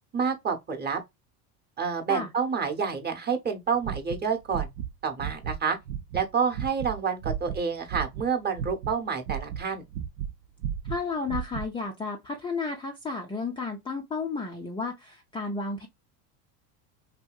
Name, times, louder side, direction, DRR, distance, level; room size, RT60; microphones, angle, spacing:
voice 1, 0.1-1.0 1.8-4.7 5.0-5.8 6.1-9.8, right 6 dB, 20° right, 0.8 m, -28 dB
sound 1, 3.7-4.9 5.2-5.6 5.9-8.3 8.6-10.3 10.6-11.7, right 9 dB, 75° right, 0.6 m, -33 dB
voice 2, 10.9-15.9, left 4 dB, 10° left, 0.3 m, -32 dB
2.7 x 2.7 x 2.3 m
hypercardioid pair, 95°, 47 cm